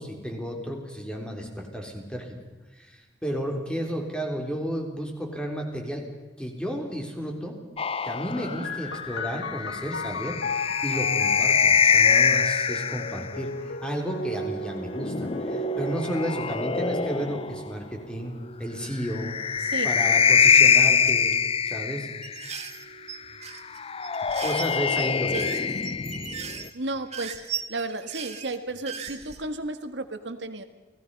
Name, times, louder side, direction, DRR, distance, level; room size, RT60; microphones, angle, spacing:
voice 1, 0.0-2.3 2.8-6.0 6.4-7.6 8.0-18.3 18.6-19.4 19.8-21.4 21.7-22.1 24.4-25.4, equal, 5° left, 2 dB, 3.6 m, -32 dB
sound 1, 7.8-13.3 14.7-17.7 19.0-22.5 23.7-26.7, left 6 dB, 35° left, 0.6 m, -24 dB
sound 2, 8.6-21.9 22.7-23.5, left 1 dB, 90° left, 1.6 m, -36 dB
voice 2, 19.6-19.9 25.3-25.5 26.7-27.4 27.7-30.6, right 2 dB, 90° right, 8 dB, 1.9 m, -33 dB
sound 3, 22.2-29.4, right 8 dB, 40° right, 2.0 m, -38 dB
28.5 x 18.0 x 5.5 m, 1.2 s
head